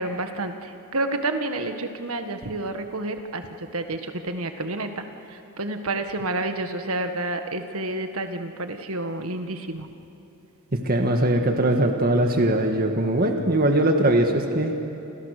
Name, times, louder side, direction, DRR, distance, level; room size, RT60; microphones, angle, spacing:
voice 1, 0.0-3.4 3.7-5.0 5.6-9.9, right 2 dB, 70° right, 6 dB, 1.7 m, -29 dB
voice 2, 10.7-14.7, right 1 dB, 40° right, 4 dB, 1.8 m, -21 dB
29.0 x 27.0 x 6.7 m, 3.0 s
head